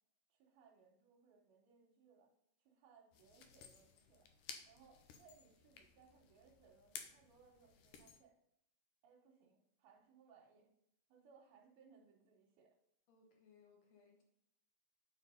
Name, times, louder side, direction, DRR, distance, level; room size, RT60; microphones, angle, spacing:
voice 1, 0.3-2.3 2.6-8.3 9.0-10.7 11.1-12.7, right 5 dB, 80° right, -2 dB, 2.9 m, -67 dB
sound 1, 3.1-8.2, left 7 dB, 75° left, 1.9 m, -56 dB
voice 2, 13.1-14.2, left 5 dB, 60° left, 0 dB, 2.1 m, -67 dB
8.4 x 4.6 x 5.5 m, 0.78 s
omnidirectional pair, 4.4 m